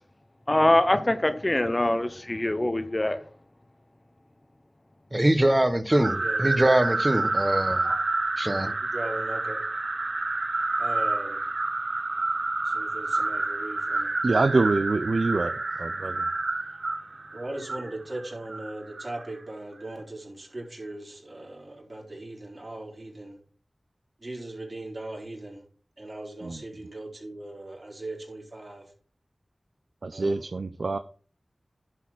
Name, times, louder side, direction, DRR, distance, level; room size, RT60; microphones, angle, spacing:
voice 1, 0.5-3.2, left 1 dB, 30° left, 0.9 m, -23 dB
voice 2, 5.1-7.8 8.4-8.7, right 1 dB, 25° right, 1.1 m, -23 dB
sound 1, 5.9-19.3, right 2 dB, 65° right, 1.0 m, -29 dB
voice 3, 6.1-6.7 7.8-8.0 8.5-9.6 10.8-11.4 12.6-14.1 17.3-23.4 24.2-25.6 26.0-28.9 30.1-30.4, right 2 dB, 50° right, 4.2 m, -39 dB
voice 4, 14.2-15.5 15.8-16.3 26.4-26.6 30.0-31.0, right 3 dB, 80° right, 0.5 m, -25 dB
11.0 x 4.2 x 5.9 m
wide cardioid pair, 60°, 0 cm